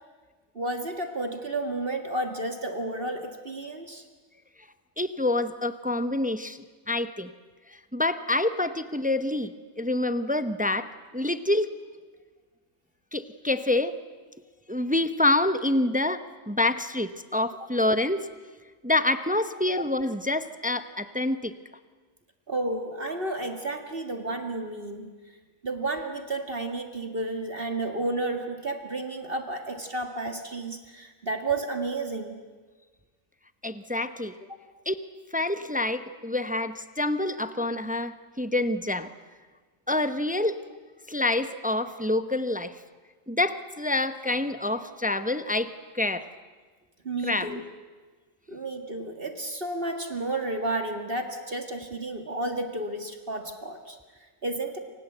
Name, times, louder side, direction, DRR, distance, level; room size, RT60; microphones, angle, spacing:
voice 1, 0.6-4.0 22.5-25.1 25.6-32.4 47.0-47.6 48.5-54.0 54.4-54.8, right 2 dB, 45° right, 5 dB, 2.2 m, -31 dB
voice 2, 5.0-7.3 7.9-11.7 13.1-14.0 14.7-18.3 18.8-21.5 33.6-34.3 34.9-35.0 35.3-39.1 39.9-40.6 41.1-42.7 43.3-46.3 47.2-47.6, left 2 dB, 10° right, 11 dB, 0.7 m, -27 dB
28.0 x 25.5 x 8.0 m, 1.4 s
omnidirectional pair, 1.4 m